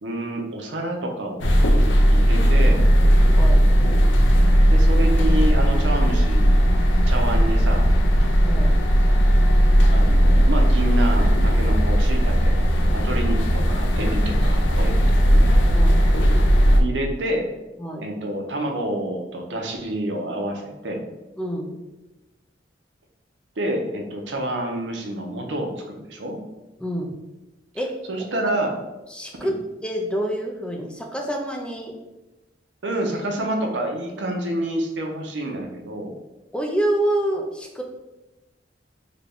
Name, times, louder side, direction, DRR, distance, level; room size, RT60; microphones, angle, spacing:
voice 1, 0.0-1.5 2.1-2.8 4.7-6.6 7.0-7.9 9.9-15.4 16.8-17.5 18.0-21.0 23.6-26.4 28.1-28.8 29.4-29.5 32.8-36.2, right 1 dB, 80° right, 2 dB, 0.6 m, -28 dB
sound 1, 1.4-16.8, equal, 80° left, 0.4 m, -17 dB
voice 2, 3.3-3.7 8.4-8.8 15.7-16.0 17.8-18.0 21.4-21.8 26.8-27.2 27.7-27.9 29.1-29.5 29.8-31.9 36.5-37.8, right 1 dB, 5° left, 1 dB, 0.3 m, -27 dB
3.7 x 2.2 x 3.4 m, 1.0 s
head